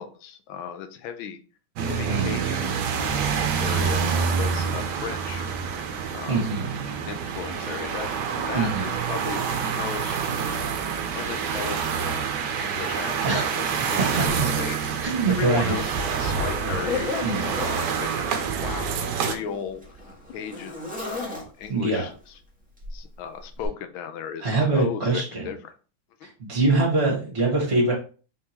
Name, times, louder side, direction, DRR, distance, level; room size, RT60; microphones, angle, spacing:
voice 1, 0.0-1.4 1.9-2.6 2.9-5.4 6.1-6.5 7.0-8.1 8.4-10.2 11.1-12.2 12.6-15.0 15.3-19.8 20.3-22.1 22.9-25.7, left 7 dB, 80° left, 8 dB, 1.4 m, -36 dB
sound 1, 1.8-19.3, right 6 dB, 70° right, 1.1 m, -27 dB
voice 2, 2.0-2.4 6.3-6.7 8.5-8.9 13.2-13.5 13.8-13.9 14.4-14.5 15.0-15.7 17.2-17.5 21.7-22.1 24.4-25.5 26.2-27.9, right 3 dB, 35° right, -4 dB, 1.5 m, -24 dB
Zipper (clothing), 14.2-14.4 14.9-17.9 18.8-21.8 22.8-23.0 23.6-23.7, left 3 dB, 5° right, 1.0 m, -34 dB
4.3 x 3.7 x 2.8 m, 0.37 s
omnidirectional pair, 2.2 m